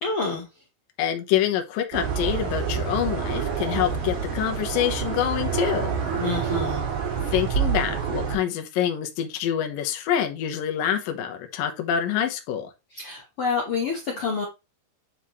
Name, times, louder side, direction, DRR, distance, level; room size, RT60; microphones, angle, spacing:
voice 1, 0.0-0.5 6.2-6.9 12.9-14.5, left 4 dB, 55° left, 1.7 m, -28 dB
voice 2, 1.0-5.9 7.3-12.7, left 10 dB, 75° left, 2.8 m, -26 dB
sound 1, 1.9-8.4, right 7 dB, 80° right, 5.0 m, -27 dB
9.6 x 4.5 x 3.1 m
omnidirectional pair, 4.2 m